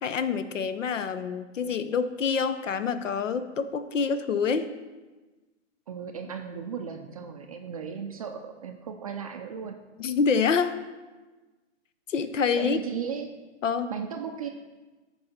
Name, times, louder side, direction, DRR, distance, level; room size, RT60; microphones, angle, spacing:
voice 1, 0.0-4.7 10.0-10.8 12.1-12.9 13.6-13.9, left 5 dB, 75° left, 12 dB, 0.8 m, -27 dB
voice 2, 5.9-9.8 12.6-13.3 13.9-14.5, right 7 dB, 30° right, 5 dB, 0.4 m, -35 dB
14.0 x 4.8 x 4.2 m, 1.2 s
hypercardioid pair, 140°, 38 cm